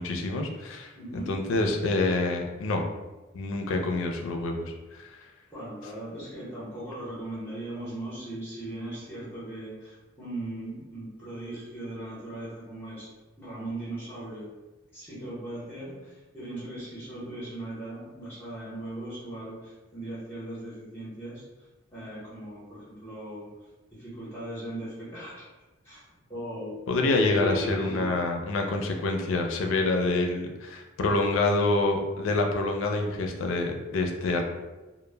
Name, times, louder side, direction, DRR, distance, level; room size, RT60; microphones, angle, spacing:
voice 1, 0.0-2.9 3.3-5.1 26.9-34.4, left 2 dB, 80° left, 3 dB, 0.4 m, -27 dB
voice 2, 1.0-1.3 5.5-13.1 13.4-14.5 14.9-21.4 21.9-23.5 23.9-25.5 25.8-26.0 26.3-28.1, right 1 dB, 10° left, -9 dB, 0.7 m, -38 dB
2.1 x 2.0 x 3.2 m, 1.1 s
head